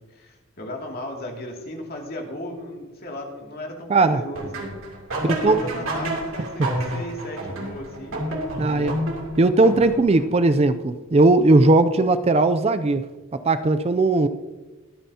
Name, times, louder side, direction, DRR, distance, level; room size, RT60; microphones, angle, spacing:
voice 1, 0.0-4.7 5.1-9.0, left 1 dB, 50° left, 0 dB, 2.4 m, -36 dB
voice 2, 3.9-4.2 5.4-5.6 8.6-8.9 9.4-13.0 13.4-14.3, right 2 dB, 30° right, 10 dB, 0.4 m, -18 dB
sound 1, 4.3-10.3, right 1 dB, 80° right, 2.8 m, -30 dB
23.5 x 9.1 x 2.8 m, 1.2 s
head